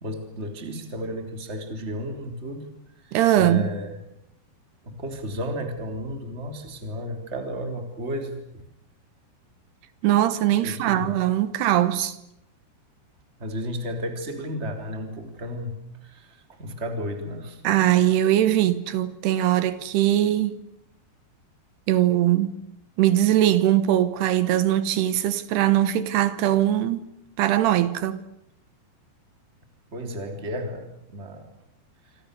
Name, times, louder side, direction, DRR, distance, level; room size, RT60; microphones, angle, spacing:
voice 1, 0.0-2.7 3.0-4.0 4.8-8.6 10.6-11.1 13.4-15.8 16.0-17.9 29.9-31.5, equal, 15° right, 3.2 m, -33 dB
voice 2, 3.1-3.7 10.0-12.2 17.6-20.6 21.9-22.6 23.0-27.1 27.4-28.2, right 12 dB, 75° right, 3.0 m, -21 dB
27.5 x 26.0 x 6.8 m
omnidirectional pair, 5.2 m